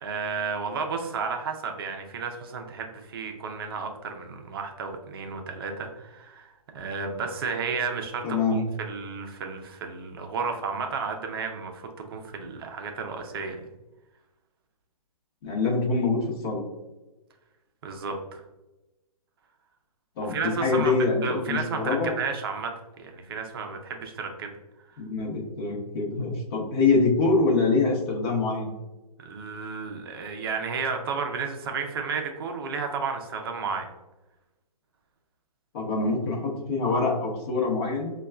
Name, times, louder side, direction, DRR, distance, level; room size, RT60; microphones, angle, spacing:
voice 1, 0.0-13.6 17.8-18.4 20.2-24.5 29.2-33.9, right 5 dB, 40° right, 4 dB, 0.5 m, -32 dB
voice 2, 8.2-8.6 15.4-16.6 20.2-22.1 25.0-28.7 35.7-38.1, left 3 dB, 40° left, -2 dB, 0.9 m, -25 dB
5.1 x 2.3 x 2.3 m, 1.1 s
hypercardioid pair, 155°, 20 cm